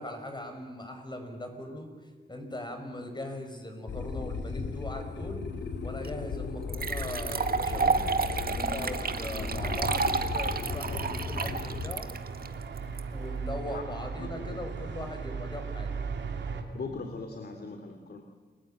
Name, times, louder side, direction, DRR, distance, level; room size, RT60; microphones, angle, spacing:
voice 1, 0.0-5.5 5.8-8.1 8.5-12.1 13.1-15.9, left 1 dB, 25° left, 5 dB, 5.9 m, -40 dB
sound 1, 3.9-12.0, left 4 dB, 85° left, 2.7 m, -36 dB
sound 2, 6.0-6.1 6.7-13.0, right 4 dB, 55° right, 1.7 m, -30 dB
sound 3, 6.8-16.6, right 5 dB, 90° right, 2.9 m, -38 dB
voice 2, 14.2-14.6 16.7-18.2, left 4 dB, 60° left, 5 dB, 2.7 m, -40 dB
29.5 x 21.0 x 8.9 m, 1.4 s
cardioid pair, 80°, 18 cm